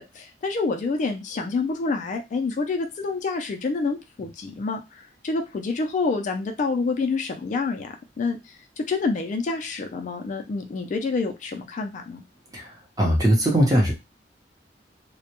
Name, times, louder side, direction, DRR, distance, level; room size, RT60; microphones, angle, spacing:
voice 1, 0.0-12.2, left 4 dB, 45° left, 4 dB, 0.3 m, -28 dB
voice 2, 13.0-13.9, equal, 20° right, 0 dB, 0.7 m, -19 dB
2.1 x 2.0 x 2.9 m, 0.24 s
head